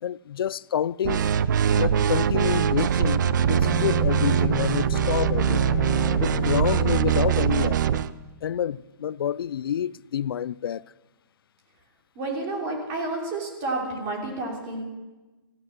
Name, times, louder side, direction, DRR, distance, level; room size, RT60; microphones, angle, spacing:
voice 1, 0.0-1.3 1.8-5.8 6.2-8.0 8.4-10.8, left 9 dB, 80° left, 0.4 m, -28 dB
sound 1, 1.0-8.1, right 8 dB, 55° right, 0.6 m, -22 dB
Bowed string instrument, 3.3-7.5, right 1 dB, 35° left, 1.6 m, -32 dB
voice 2, 12.1-14.8, right 2 dB, 25° right, 3.3 m, -30 dB
17.0 x 14.0 x 6.0 m
hypercardioid pair, 170°, 12 cm